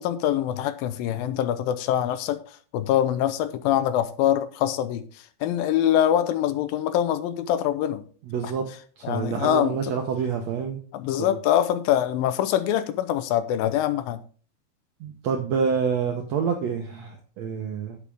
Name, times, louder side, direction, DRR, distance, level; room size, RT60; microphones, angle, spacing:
voice 1, 0.0-2.4 2.7-5.0 5.4-8.0 8.4-8.5 9.0-9.9 10.9-14.2, left 11 dB, 85° left, 2.4 m, -24 dB
voice 2, 8.3-8.7 9.0-10.8 11.3-11.4 15.0-18.0, right 6 dB, 75° right, 1.6 m, -27 dB
10.0 x 8.2 x 3.5 m
omnidirectional pair, 4.3 m